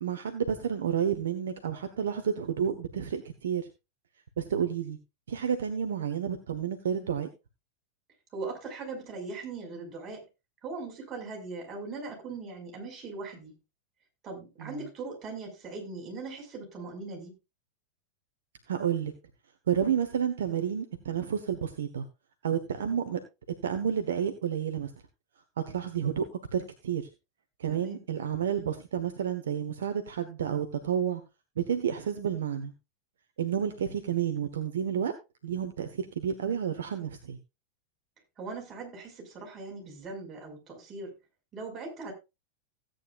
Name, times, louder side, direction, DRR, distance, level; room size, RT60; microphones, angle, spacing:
voice 1, 0.0-3.7 4.4-5.0 5.3-7.3 14.6-14.8 18.7-19.1 19.7-22.0 22.4-23.2 23.6-24.9 25.6-27.1 27.6-31.2 31.6-32.7 33.4-35.2 35.4-37.4, right 8 dB, 65° right, 1.2 m, -30 dB
voice 2, 8.3-10.2 10.6-13.6 14.2-17.3 27.7-28.0 38.4-41.1 41.5-42.1, right 3 dB, 25° right, 5.7 m, -40 dB
16.0 x 9.1 x 2.5 m
figure-of-eight pair, 90°, 0 cm